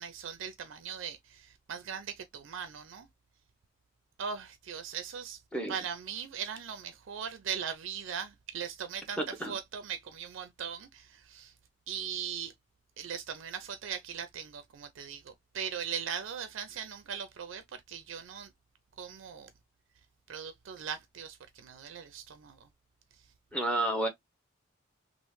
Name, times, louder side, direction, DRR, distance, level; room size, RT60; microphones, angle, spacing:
voice 1, 0.0-3.1 4.2-5.4 5.7-11.5 11.9-12.5 13.0-18.5 19.0-19.5 20.3-22.6, right 7 dB, 70° right, 0.4 m, -39 dB
voice 2, 9.2-9.6 23.5-24.1, right 1 dB, 5° left, 0.7 m, -30 dB
3.1 x 2.0 x 3.1 m
head